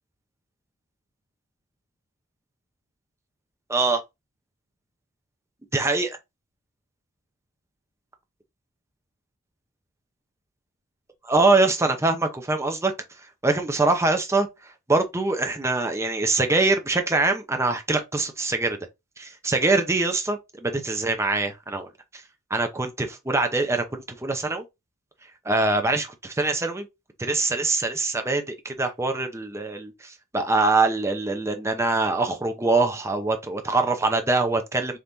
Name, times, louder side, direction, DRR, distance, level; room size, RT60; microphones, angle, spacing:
voice 1, 3.7-4.0 5.7-6.2 11.2-12.9 13.4-14.5 14.9-18.8 19.2-21.9 22.5-23.8 24.2-24.6 25.5-26.9 27.2-35.0, right 3 dB, 10° right, 0.6 m, -23 dB
3.5 x 2.9 x 3.9 m
head